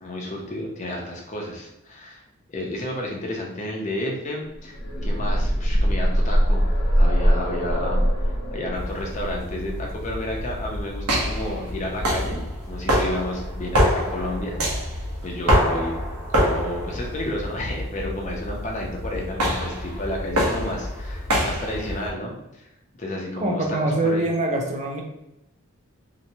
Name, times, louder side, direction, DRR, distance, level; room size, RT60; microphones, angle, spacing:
voice 1, 0.0-2.2 2.5-6.7 7.0-15.9 16.3-22.7 23.0-24.2, left 1 dB, 35° left, -1 dB, 0.5 m, -32 dB
sound 1, 4.5-12.3 13.5-13.6 14.0-14.1, equal, 75° left, 0.7 m, -23 dB
sound 2, 8.7-22.1, equal, 90° right, 0.7 m, -26 dB
voice 2, 23.4-25.0, right 2 dB, 30° right, 1 dB, 0.4 m, -24 dB
2.8 x 2.1 x 2.6 m, 0.88 s
head